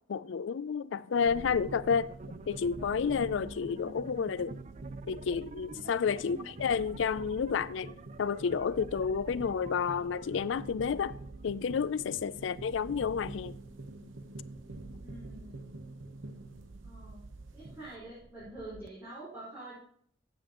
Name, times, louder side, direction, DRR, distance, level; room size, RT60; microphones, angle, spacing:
voice 1, 0.1-2.1 2.5-4.6 5.1-11.1 11.4-13.6, left 6 dB, 75° left, 0.4 m, -30 dB
sound 1, 1.1-18.0, right 2 dB, 85° right, 0.9 m, -47 dB
sound 2, 1.3-18.9, right 3 dB, 35° right, 0.4 m, -49 dB
voice 2, 15.0-15.6 16.8-17.3 17.5-19.8, right 1 dB, 10° right, 4.6 m, -46 dB
14.0 x 8.2 x 3.0 m
head